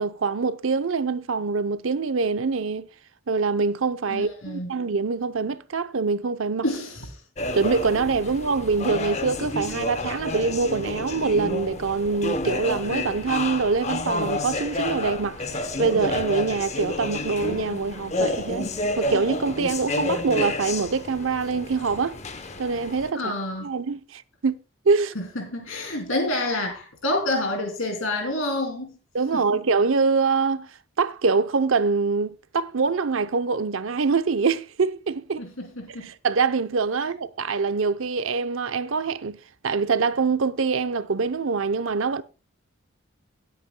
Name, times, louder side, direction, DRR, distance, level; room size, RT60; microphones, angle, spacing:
voice 1, 0.0-2.9 3.3-6.6 7.5-22.2 22.6-23.3 23.6-24.6 24.9-25.1 29.1-35.5 36.0-39.4 39.6-42.2, right 4 dB, 75° right, 0.7 m, -24 dB
voice 2, 4.1-4.7 6.6-7.1 23.1-23.7 25.1-29.0 29.3-29.4 35.4-36.1, left 1 dB, 85° left, 2.9 m, -28 dB
sound 1, 7.4-23.1, left 2 dB, 35° left, 0.8 m, -30 dB
18.5 x 8.4 x 2.2 m
head